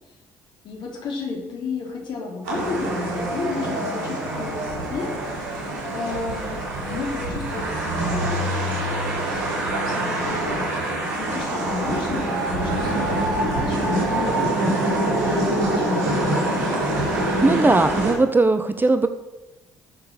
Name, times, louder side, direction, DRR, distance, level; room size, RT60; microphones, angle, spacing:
voice 1, 0.6-5.7 5.9-6.6 6.8-8.6 8.9-9.5 9.8-10.7 11.2-16.2, left 4 dB, 60° left, 0 dB, 3.2 m, -32 dB
sound 1, 2.4-18.1, right 1 dB, 80° right, 4.4 m, -25 dB
voice 2, 17.4-19.1, right 3 dB, 20° right, 10 dB, 1.0 m, -18 dB
13.5 x 6.9 x 6.7 m, 1.0 s
hypercardioid pair, 45°, 9 cm